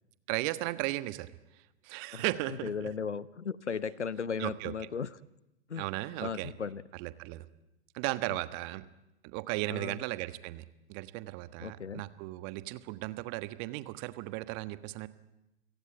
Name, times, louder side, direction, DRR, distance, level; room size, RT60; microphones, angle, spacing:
voice 1, 0.3-1.3 1.8-2.9 4.4-4.7 5.8-6.5 6.9-7.4 7.9-8.9 9.2-10.6 10.9-15.1, right 19 dB, 40° right, 14 dB, 1.4 m, -36 dB
voice 2, 2.1-5.2 5.7-5.9 6.2-6.8 8.3-8.4 9.7-10.0 11.6-12.0, left 6 dB, 90° left, 20 dB, 0.9 m, -36 dB
29.0 x 17.0 x 9.0 m, 0.93 s
figure-of-eight pair, 105°, 34 cm